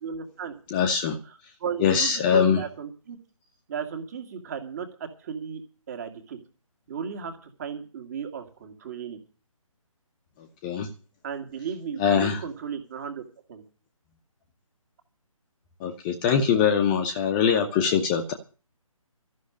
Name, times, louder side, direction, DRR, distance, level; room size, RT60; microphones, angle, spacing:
voice 1, 0.0-0.5 1.3-3.2 3.7-5.6 5.9-6.4 6.9-9.2 11.2-13.2 13.5-13.6, right 7 dB, 30° right, 7 dB, 2.3 m, -35 dB
voice 2, 0.7-1.2 1.8-2.6 10.6-10.9 12.0-12.4 15.8-18.3, left 7 dB, 15° left, 5 dB, 1.0 m, -22 dB
13.5 x 6.5 x 9.9 m, 0.35 s
figure-of-eight pair, 145°, 18 cm